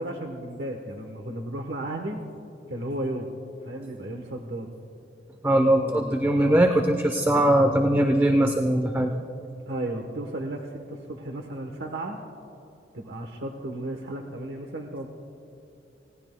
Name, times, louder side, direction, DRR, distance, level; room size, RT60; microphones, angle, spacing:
voice 1, 0.0-2.2 2.7-3.3 3.6-4.7 5.7-6.7 9.7-12.2 12.9-15.1, right 1 dB, 85° right, 3 dB, 1.1 m, -34 dB
voice 2, 5.4-9.1, right 1 dB, 15° right, 4 dB, 0.7 m, -21 dB
29.0 x 18.0 x 2.2 m, 2.8 s
head